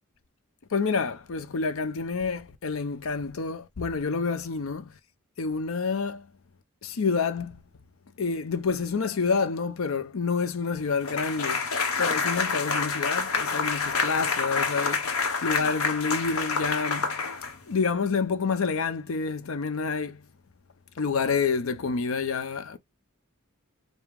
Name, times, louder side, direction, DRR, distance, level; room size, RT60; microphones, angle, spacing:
voice 1, 0.7-4.9 5.4-6.3 6.8-7.6 8.2-11.7 12.0-17.2 17.7-20.2 21.0-22.8, left 5 dB, 65° left, 0.6 m, -28 dB
sound 1, 11.0-17.8, left 5 dB, 85° left, 1.0 m, -28 dB
4.9 x 2.2 x 3.4 m
head